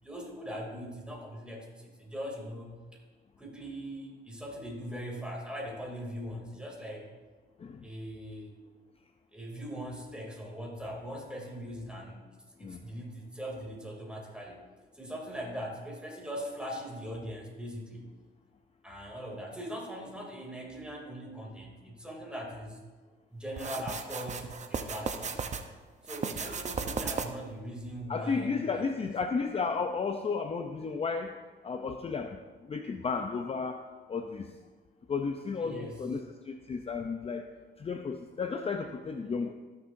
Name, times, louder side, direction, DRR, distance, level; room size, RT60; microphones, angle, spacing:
voice 1, 0.0-2.8 3.4-7.1 7.8-8.5 9.3-14.6 14.9-18.1 18.8-22.8 23.3-25.4 26.0-29.1 35.6-36.0, equal, 5° right, -1 dB, 2.8 m, -41 dB
sound 1, 23.6-25.6 26.0-27.5, right 5 dB, 35° right, 0.8 m, -35 dB
voice 2, 28.1-31.3 31.6-33.8 34.1-34.5 35.1-37.4 37.8-39.5, left 5 dB, 30° left, 5 dB, 0.6 m, -33 dB
18.5 x 6.5 x 2.7 m, 1.4 s
cardioid pair, 90°, 20 cm